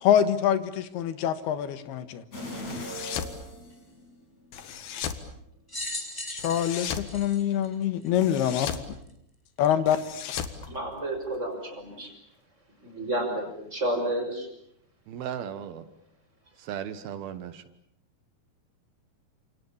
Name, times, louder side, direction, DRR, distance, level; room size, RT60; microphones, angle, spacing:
voice 1, 0.0-2.2 6.3-8.7 9.6-10.0, left 10 dB, 85° left, 11 dB, 3.4 m, -25 dB
sound 1, 2.3-4.5 4.9-5.0, left 1 dB, 45° left, 7.5 m, -39 dB
sound 2, 2.6-3.4 4.5-5.3 6.4-7.1 8.2-8.9 9.9-11.4, left 8 dB, 70° left, 3.4 m, -36 dB
sound 3, 5.7-8.4 9.1-9.2 10.3-10.4, left 1 dB, 5° left, 3.6 m, -38 dB
voice 2, 10.7-12.1 12.8-14.5, right 1 dB, 15° right, 4 dB, 5.9 m, -31 dB
voice 3, 15.1-15.9 16.6-17.6, right 9 dB, 75° right, 12 dB, 3.1 m, -36 dB
29.5 x 27.5 x 7.2 m, 0.74 s
omnidirectional pair, 4.4 m